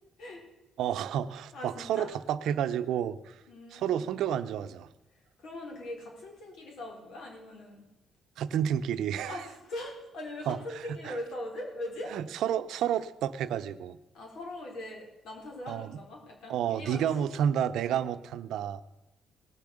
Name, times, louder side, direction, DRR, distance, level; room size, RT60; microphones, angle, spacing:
voice 1, 0.8-3.4 3.7-4.9 8.4-9.4 10.5-10.6 11.0-11.2 12.1-14.0 15.7-16.0 16.5-18.8, right 9 dB, 80° right, 12 dB, 0.6 m, -30 dB
voice 2, 1.5-2.1 3.5-4.1 5.1-7.8 8.6-8.8 9.3-12.2 14.1-17.3, left 1 dB, 75° left, -1 dB, 4.4 m, -41 dB
18.0 x 6.9 x 6.5 m, 1.0 s
cardioid pair, 90°, 0 cm